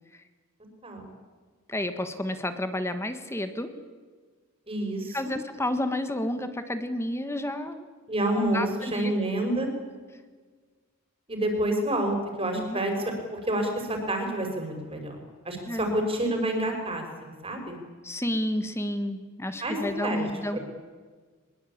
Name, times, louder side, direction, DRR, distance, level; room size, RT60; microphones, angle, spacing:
voice 1, 1.7-3.7 5.1-7.8 8.3-9.5 12.5-13.1 15.7-15.9 18.0-20.6, left 1 dB, 10° left, 9 dB, 1.5 m, -31 dB
voice 2, 4.7-5.2 8.1-9.7 11.3-12.9 13.3-15.2 15.4-17.8 19.6-20.3 20.5-20.6, right 1 dB, 25° right, 3 dB, 5.6 m, -28 dB
23.0 x 21.5 x 8.7 m, 1.5 s
head